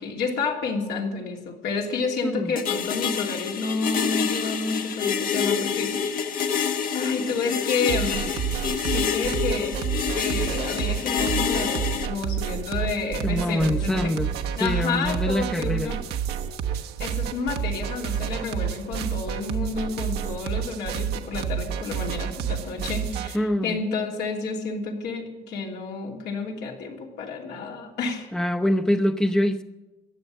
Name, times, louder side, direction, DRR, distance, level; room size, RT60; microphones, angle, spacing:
voice 1, 0.0-6.6 6.9-8.3 8.9-9.8 10.1-14.1 14.6-16.0 17.0-28.3, left 4 dB, 80° left, 0 dB, 3.0 m, -30 dB
sound 1, 2.6-12.1, left 7 dB, 55° left, 1.2 m, -27 dB
sound 2, 7.9-23.4, right 8 dB, 75° right, 1.1 m, -29 dB
voice 2, 13.2-14.3 14.6-15.9 23.3-23.8 28.3-29.6, left 1 dB, 5° left, 6 dB, 0.7 m, -24 dB
15.5 x 9.9 x 7.8 m, 1.1 s
cardioid pair, 110°, 17 cm